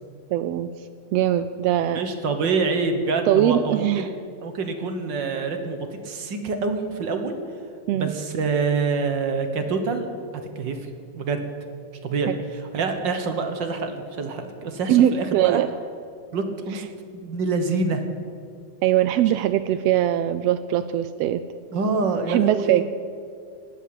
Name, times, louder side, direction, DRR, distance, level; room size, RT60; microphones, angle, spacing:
voice 1, 0.3-0.7 1.1-2.1 3.3-4.1 7.9-8.1 12.3-12.4 14.9-15.7 16.7-16.8 18.8-21.4 22.3-22.8, right 12 dB, 90° right, 12 dB, 1.4 m, -21 dB
voice 2, 1.9-4.1 4.4-7.4 7.9-10.1 10.5-10.9 11.1-11.4 12.0-15.6 16.3-16.8 17.1-18.0 21.7-22.8, right 4 dB, 50° right, 6 dB, 1.4 m, -26 dB
18.0 x 8.3 x 8.6 m, 2.3 s
omnidirectional pair, 3.4 m